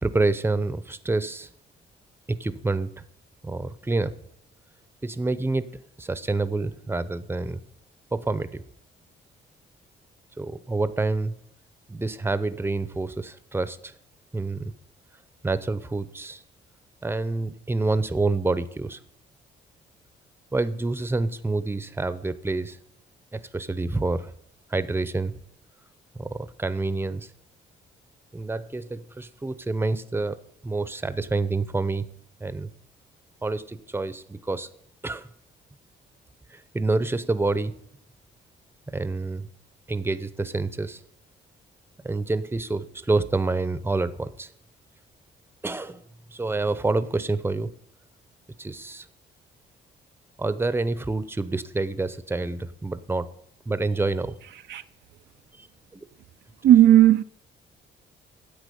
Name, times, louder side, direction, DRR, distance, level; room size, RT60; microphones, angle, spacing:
voice 1, 0.0-1.5 2.3-3.0 3.4-4.2 5.0-5.6 6.0-7.6 8.1-8.6 10.4-11.4 11.9-13.9 14.3-14.7 15.4-16.4 17.0-19.0 20.5-22.8 23.3-24.3 24.7-25.3 26.1-27.3 28.3-30.4 30.6-32.1 32.4-32.7 33.4-34.7 35.0-35.3 36.5-37.8 38.9-39.5 39.9-41.0 42.0-44.5 45.6-46.0 46.3-47.7 48.6-49.1 50.4-53.3 53.7-54.4 55.6-55.7 55.9-56.0, right 3 dB, 10° right, 0.7 m, -27 dB
voice 2, 56.6-57.2, right 12 dB, 60° right, 0.5 m, -14 dB
10.0 x 8.0 x 6.9 m
cardioid pair, 90°, 20 cm